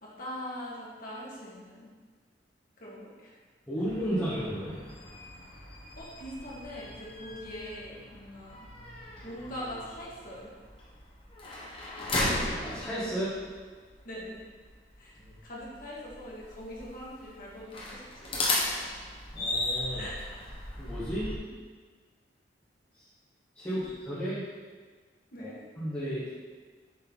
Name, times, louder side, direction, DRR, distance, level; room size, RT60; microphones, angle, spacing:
voice 1, 0.0-1.9 2.8-3.3 4.0-4.1 6.0-8.7 9.2-10.5 11.4-11.7 14.0-14.4 15.0-15.2 15.4-18.7 19.9-20.4 25.3-25.6, equal, 50° left, -6 dB, 1.9 m, -42 dB
voice 2, 3.7-4.8 12.6-13.3 15.2-15.3 19.3-20.0 20.8-21.3 23.5-24.4 25.4-25.5 25.8-26.3, equal, 15° left, -14 dB, 1.9 m, -33 dB
sound 1, 3.8-21.4, left 1 dB, 30° left, 1.3 m, -37 dB
7.5 x 4.2 x 4.1 m, 1.5 s
head